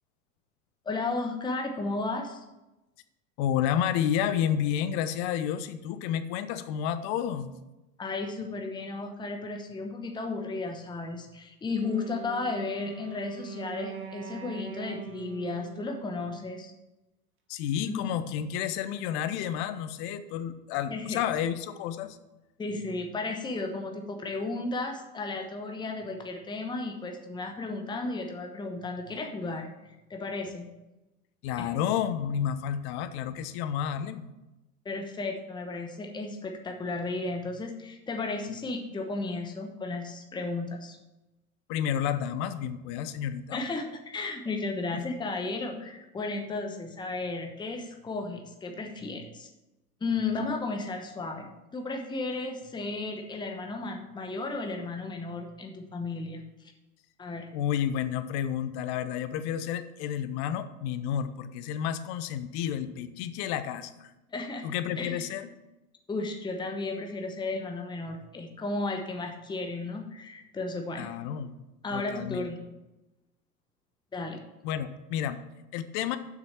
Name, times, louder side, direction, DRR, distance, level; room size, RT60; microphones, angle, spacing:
voice 1, 0.8-2.4 8.0-16.7 17.8-18.0 20.9-21.2 22.6-30.7 31.6-31.7 34.8-41.0 43.5-49.5 50.0-56.7 57.2-57.5 64.3-64.7 65.0-65.4 66.1-71.1 71.8-72.7 74.1-74.4, left 3 dB, 10° left, 4 dB, 1.0 m, -34 dB
voice 2, 3.4-7.5 17.5-22.2 31.4-34.3 41.7-43.7 44.9-45.2 57.5-64.1 64.6-65.5 71.0-71.6 71.9-72.5 74.6-75.4 75.7-76.2, left 9 dB, 45° left, 12 dB, 0.8 m, -30 dB
Wind instrument woodwind instrument, 11.8-16.8, right 8 dB, 25° right, 1.3 m, -43 dB
7.5 x 6.2 x 5.9 m, 1.0 s
hypercardioid pair, 95°, 47 cm